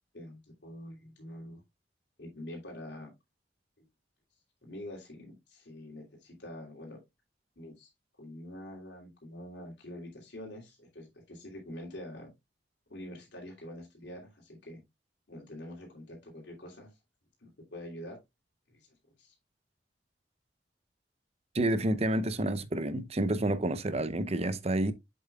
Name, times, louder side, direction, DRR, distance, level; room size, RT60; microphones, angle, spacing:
voice 1, 0.1-1.6 2.2-3.1 3.8-3.9 4.6-7.0 7.6-7.9 8.2-12.3 12.9-14.8 15.3-16.9 17.4-18.2 18.7-18.9 19.2-19.3, left 1 dB, 80° left, 2.9 m, -45 dB
voice 2, 21.5-24.9, right 1 dB, 35° right, 0.8 m, -29 dB
7.7 x 7.0 x 2.3 m
head